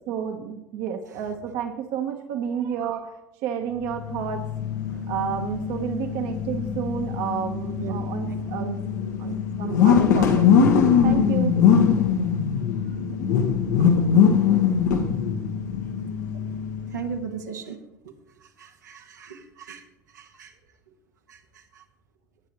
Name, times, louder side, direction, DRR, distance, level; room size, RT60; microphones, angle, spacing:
voice 1, 0.0-3.1 3.4-4.4 5.1-8.8 9.2-11.5 19.0-19.2, right 8 dB, 65° right, 4 dB, 1.3 m, -31 dB
sound 1, 3.8-17.2, left 7 dB, 80° left, 1.5 m, -22 dB
voice 2, 16.9-17.8 18.6-19.8 20.1-20.5 21.3-21.4 21.7-21.8, right 7 dB, 90° right, 1 dB, 1.6 m, -36 dB
18.0 x 8.4 x 3.2 m, 0.92 s
hypercardioid pair, 80°, 9 cm